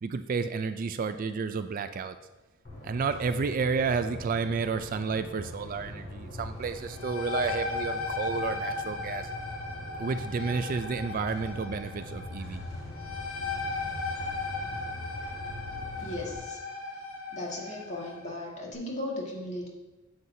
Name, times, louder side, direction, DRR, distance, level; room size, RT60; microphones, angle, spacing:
voice 1, 0.0-2.2 2.8-9.3 10.0-12.6, right 5 dB, 40° right, 10 dB, 0.3 m, -31 dB
sound 1, 2.6-16.4, left 1 dB, 50° left, 2.1 m, -42 dB
sound 2, 6.8-18.2, left 4 dB, 85° left, 1.6 m, -37 dB
voice 2, 16.0-16.6 17.3-19.7, left 1 dB, 35° left, -3 dB, 1.8 m, -36 dB
9.5 x 7.8 x 2.7 m, 1.1 s
head